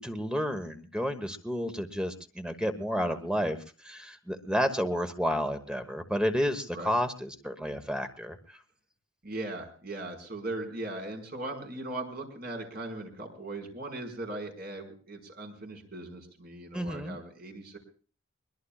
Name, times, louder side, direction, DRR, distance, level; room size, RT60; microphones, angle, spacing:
voice 1, 0.0-3.6 3.8-8.4 16.7-17.2, equal, 5° right, 7 dB, 1.2 m, -31 dB
voice 2, 9.2-17.8, right 2 dB, 50° right, 2 dB, 5.0 m, -39 dB
22.5 x 22.0 x 2.4 m, 0.39 s
head